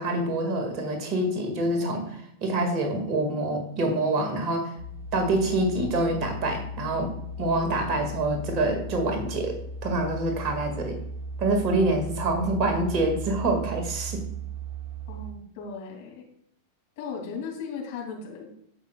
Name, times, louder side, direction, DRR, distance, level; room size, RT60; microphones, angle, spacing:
voice 1, 0.0-4.7 5.1-7.1 7.4-11.0 11.4-14.2, right 2 dB, 35° right, 3 dB, 2.0 m, -26 dB
sound 1, 4.8-15.3, right 1 dB, 55° right, 1.1 m, -36 dB
voice 2, 15.1-16.3 17.0-18.5, left 5 dB, 50° left, 0 dB, 2.6 m, -37 dB
15.0 x 5.6 x 2.3 m, 0.71 s
figure-of-eight pair, 90°, 0 cm